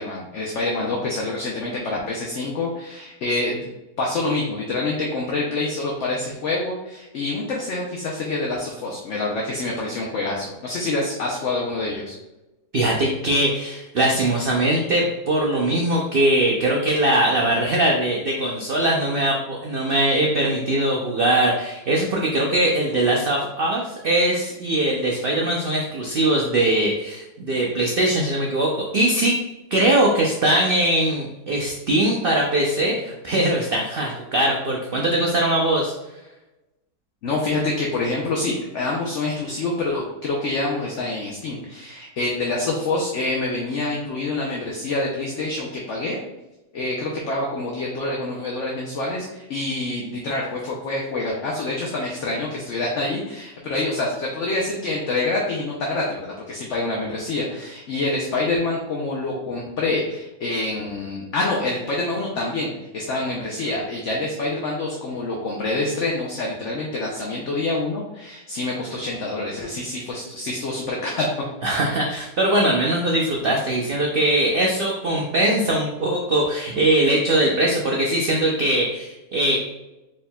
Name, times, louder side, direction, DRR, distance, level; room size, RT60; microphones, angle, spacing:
voice 1, 0.0-3.7 4.0-12.2 37.2-46.2 46.7-71.3, left 2 dB, 60° left, -2 dB, 0.8 m, -26 dB
voice 2, 12.7-29.3 29.7-35.9 71.6-79.6, right 1 dB, 80° right, -1 dB, 0.5 m, -21 dB
4.4 x 3.6 x 2.2 m, 1.0 s
omnidirectional pair, 1.7 m